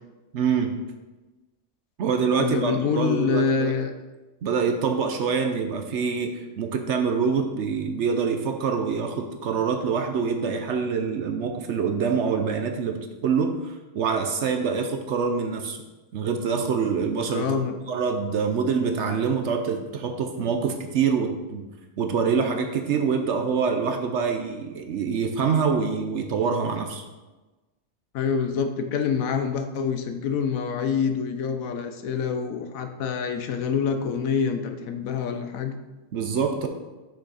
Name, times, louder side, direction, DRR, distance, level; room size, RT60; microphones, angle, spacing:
voice 1, 0.3-0.8 2.0-3.7 4.4-15.8 16.1-17.6 17.9-21.7 22.0-27.0 36.1-36.7, right 5 dB, 60° right, 5 dB, 0.9 m, -25 dB
voice 2, 2.4-3.9 17.3-17.8 28.1-35.8, left 6 dB, 75° left, 7 dB, 1.1 m, -26 dB
6.3 x 6.0 x 4.1 m, 1.2 s
omnidirectional pair, 1.5 m